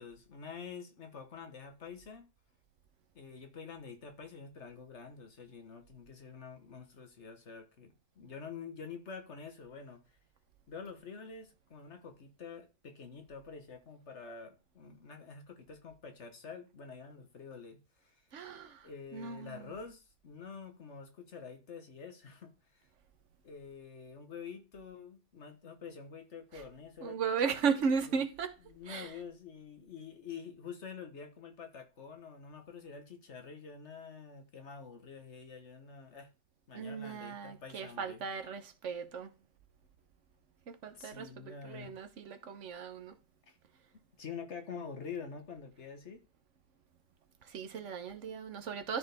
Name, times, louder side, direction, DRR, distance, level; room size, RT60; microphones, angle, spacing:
voice 1, 0.0-2.2 3.1-10.0 10.7-18.1 18.8-22.9 23.4-27.2 28.7-36.3 36.7-38.2 40.9-42.0 43.5-43.6 44.2-46.2, left 6 dB, 65° left, 1.6 m, -47 dB
voice 2, 18.3-19.7 26.5-26.6 27.0-28.6 28.9-29.1 36.7-39.3 40.7-43.1 47.4-49.0, right 6 dB, 70° right, 1.3 m, -36 dB
13.0 x 4.6 x 3.5 m
omnidirectional pair, 1.3 m